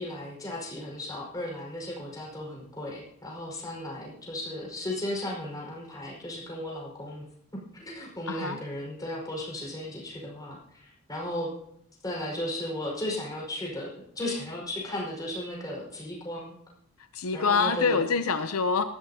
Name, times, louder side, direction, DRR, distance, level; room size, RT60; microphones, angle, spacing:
voice 1, 0.0-7.3 7.5-10.6 11.1-11.5 12.0-13.9 14.2-16.5 17.3-18.0, left 1 dB, 15° left, -3 dB, 4.9 m, -35 dB
voice 2, 8.3-8.6 17.1-18.8, left 4 dB, 75° left, 9 dB, 0.7 m, -25 dB
19.0 x 14.0 x 2.8 m, 0.73 s
head